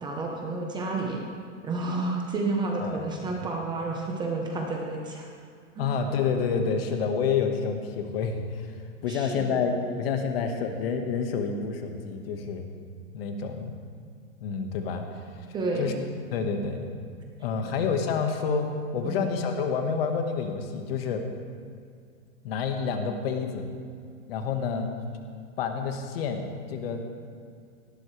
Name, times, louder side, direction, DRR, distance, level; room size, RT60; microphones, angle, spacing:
voice 1, 0.0-1.2 1.6-5.3 5.8-5.9 9.1-9.7 15.5-15.9 19.0-19.2, right 3 dB, 10° right, 0 dB, 1.0 m, -30 dB
voice 2, 5.8-8.7 9.0-12.7 13.1-13.8 14.4-15.2 15.8-15.9 16.3-16.9 17.4-18.7 18.9-21.2 22.4-23.7 24.3-24.9 25.6-27.0, left 5 dB, 45° left, 5 dB, 1.6 m, -28 dB
18.5 x 15.5 x 3.3 m, 2.2 s
hypercardioid pair, 160°, 40 cm